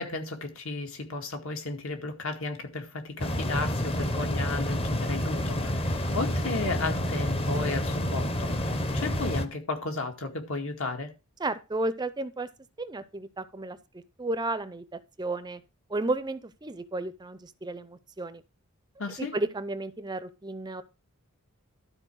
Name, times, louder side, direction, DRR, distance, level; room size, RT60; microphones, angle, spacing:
voice 1, 0.0-11.1 19.0-19.3, left 3 dB, 65° left, 2.0 m, -34 dB
sound 1, 3.2-9.4, equal, 25° left, 0.9 m, -29 dB
voice 2, 11.4-12.5 12.8-15.6 15.9-18.4 19.2-20.8, right 2 dB, 20° right, 0.5 m, -33 dB
12.5 x 4.4 x 6.2 m
head